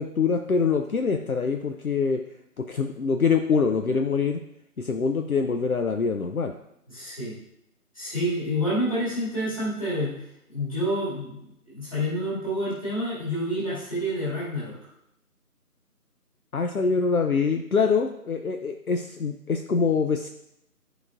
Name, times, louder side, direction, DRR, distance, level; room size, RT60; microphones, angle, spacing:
voice 1, 0.0-2.2 2.6-4.4 4.8-6.5 16.5-20.3, left 5 dB, 65° left, 5 dB, 0.6 m, -24 dB
voice 2, 6.9-7.4 7.9-10.1 10.5-11.4 11.7-14.7, equal, 20° left, -9 dB, 2.2 m, -28 dB
11.0 x 4.9 x 2.5 m, 0.79 s
figure-of-eight pair, 170°, 47 cm